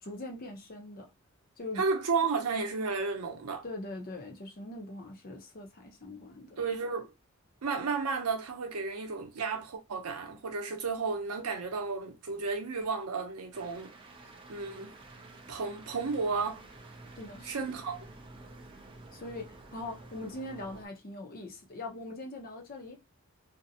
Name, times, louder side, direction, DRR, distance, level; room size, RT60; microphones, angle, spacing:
voice 1, 0.0-1.1 1.6-1.8 3.6-6.6 17.2-17.8 19.1-23.0, left 2 dB, 40° left, 0.6 m, -42 dB
voice 2, 1.8-3.6 6.6-7.1 7.6-13.9 14.2-14.9 15.5-16.6 17.4-18.0, right 4 dB, 90° right, 0.7 m, -33 dB
sound 1, 13.5-20.9, right 2 dB, 25° right, 0.4 m, -51 dB
2.5 x 2.0 x 2.7 m
head